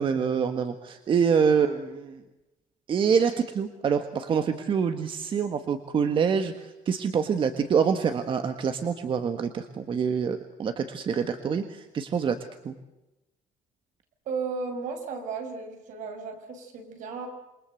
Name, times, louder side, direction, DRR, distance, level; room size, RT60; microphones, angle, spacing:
voice 1, 0.0-2.2 2.9-12.4 12.6-12.7, right 6 dB, 40° right, 8 dB, 1.6 m, -26 dB
voice 2, 14.3-17.3, right 5 dB, 70° right, 6 dB, 6.3 m, -34 dB
28.0 x 23.5 x 7.9 m, 0.99 s
cardioid pair, 165°, 14 cm